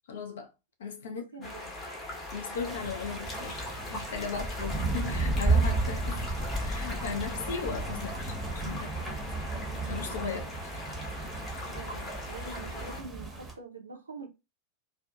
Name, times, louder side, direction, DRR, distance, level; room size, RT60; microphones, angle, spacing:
voice 1, 0.1-0.5 0.8-1.5 2.3-9.2 9.8-10.4 11.5-11.8, left 5 dB, 60° left, 0.5 m, -37 dB
voice 2, 1.0-1.9 8.7-8.9 10.2-10.5 11.7-14.3, right 4 dB, 75° right, 0.5 m, -45 dB
sound 1, 1.4-13.0, left 1 dB, 25° left, 0.8 m, -40 dB
sound 2, 2.6-13.5, right 4 dB, 10° right, 0.7 m, -34 dB
Wind, 4.1-10.0, left 2 dB, 10° left, 0.3 m, -38 dB
2.6 x 2.3 x 2.3 m
figure-of-eight pair, 90°, 0 cm